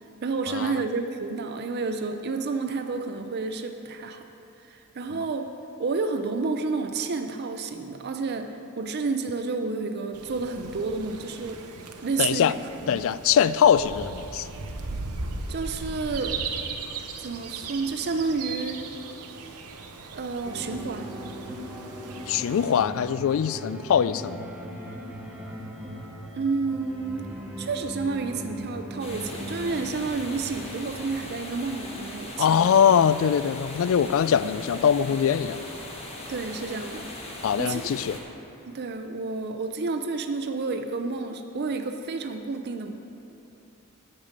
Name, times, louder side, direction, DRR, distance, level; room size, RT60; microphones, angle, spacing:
voice 1, 0.2-4.2 4.6-5.5 5.8-11.6 12.0-12.6 12.9-13.0 15.5-16.4 17.2-18.8 19.3-19.6 20.1-21.1 26.4-27.3 27.6-32.7 36.3-37.1 37.5-37.9 38.7-42.9, right 4 dB, 45° right, 6 dB, 0.5 m, -30 dB
sound 1, 10.1-22.8, right 4 dB, 90° right, 0.8 m, -38 dB
voice 2, 12.2-12.5 12.9-14.5 22.3-24.5 32.4-35.6 37.4-38.2, left 8 dB, 60° left, 16 dB, 0.3 m, -22 dB
sound 2, 20.4-34.1, equal, 5° right, 0.9 m, -40 dB
sound 3, 29.0-38.2, left 1 dB, 30° left, 1.3 m, -39 dB
8.7 x 6.7 x 7.4 m, 2.9 s
head